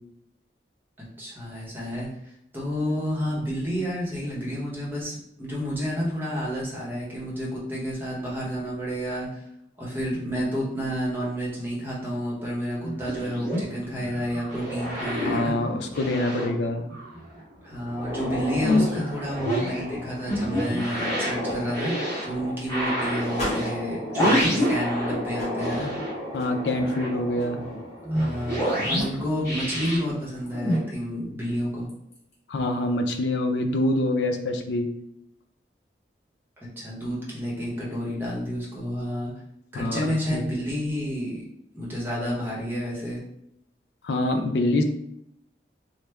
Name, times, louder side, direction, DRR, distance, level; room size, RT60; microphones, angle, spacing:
voice 1, 1.0-2.1 2.5-9.5 9.8-15.5 17.6-21.9 22.2-25.9 28.1-31.9 36.8-39.3 39.7-41.4 41.7-43.2, equal, 10° right, -6 dB, 0.8 m, -30 dB
sound 1, 12.7-17.4 17.7-25.3 25.6-30.8, equal, 15° left, 1.4 m, -28 dB
voice 2, 15.3-16.9 26.3-27.6 32.5-34.9 39.7-40.4 44.0-44.8, left 1 dB, 75° left, 5 dB, 0.4 m, -25 dB
sound 2, 17.8-28.6 28.9-29.0 29.8-29.9 30.5-30.6 31.9-32.2, left 1 dB, 40° left, 1.2 m, -34 dB
3.1 x 2.1 x 3.3 m, 0.78 s
head